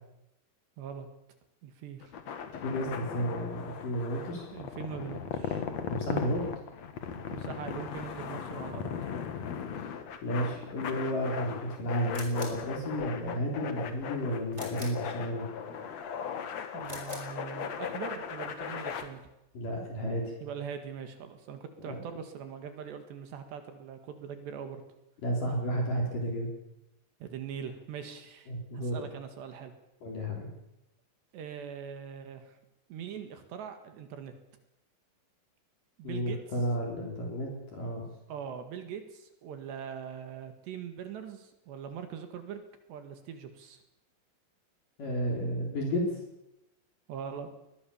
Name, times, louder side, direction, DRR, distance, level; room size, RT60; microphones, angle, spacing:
voice 1, 0.8-1.1 1.6-2.1 4.5-5.7 7.3-8.9 16.7-19.2 20.4-24.8 27.2-29.7 31.3-32.6 32.9-34.3 36.0-36.4 38.3-42.6 42.9-43.8 47.1-47.5, right 7 dB, 65° right, 8 dB, 3.7 m, -42 dB
sound 1, 2.0-19.0, left 7 dB, 65° left, 1.7 m, -38 dB
voice 2, 2.6-4.5 5.9-6.4 10.2-15.4 19.5-20.3 21.8-22.0 25.2-26.5 28.5-29.0 30.0-30.5 36.0-38.1 45.0-46.0, equal, 45° left, 0 dB, 5.1 m, -32 dB
sound 2, 12.1-12.7 14.5-15.1 16.8-17.3, right 1 dB, 15° right, 4.6 m, -45 dB
22.0 x 20.0 x 7.1 m, 0.88 s
omnidirectional pair, 5.7 m